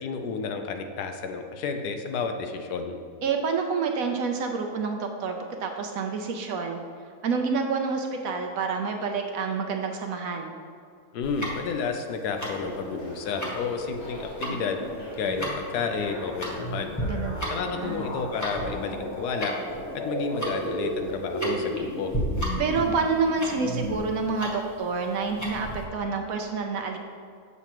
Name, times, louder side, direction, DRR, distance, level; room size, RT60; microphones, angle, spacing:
voice 1, 0.0-3.0 11.1-14.8 15.2-16.9 17.5-19.6 19.9-22.1, left 5 dB, 80° left, 5 dB, 1.2 m, -31 dB
voice 2, 3.2-6.8 7.2-10.6 17.0-18.1 22.6-27.0, right 4 dB, 70° right, 3 dB, 1.0 m, -28 dB
Tick-tock, 11.2-25.8, equal, 15° left, 0.9 m, -35 dB
sound 1, 12.4-24.0, right 1 dB, 45° left, 1.2 m, -35 dB
7.2 x 6.7 x 3.0 m, 2.3 s
omnidirectional pair, 1.7 m